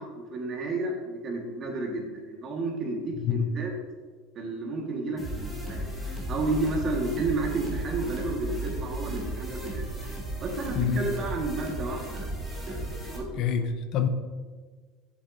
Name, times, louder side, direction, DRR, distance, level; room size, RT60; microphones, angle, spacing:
voice 1, 0.0-3.7 4.3-5.9 6.3-9.8 10.4-13.6, right 2 dB, 35° right, 1.5 m, -32 dB
sound 1, 5.2-13.2, right 1 dB, ahead, 1.5 m, -35 dB
voice 2, 10.7-11.1 13.4-14.1, left 7 dB, 50° left, 0.5 m, -26 dB
7.3 x 7.3 x 2.6 m
supercardioid pair, 125°, 0 cm